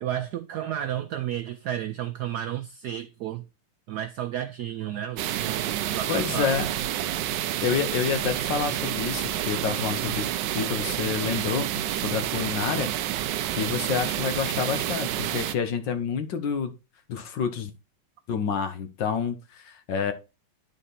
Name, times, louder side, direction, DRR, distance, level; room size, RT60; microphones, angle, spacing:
voice 1, 0.0-3.4 3.9-6.5, right 11 dB, 90° right, 0.9 m, -32 dB
sound 1, 5.2-15.5, right 12 dB, 70° right, 1.1 m, -29 dB
voice 2, 6.1-6.7 7.6-12.9 13.5-16.7 17.1-17.7 18.3-20.1, left 7 dB, 60° left, 1.6 m, -28 dB
10.0 x 4.2 x 4.1 m
omnidirectional pair, 2.4 m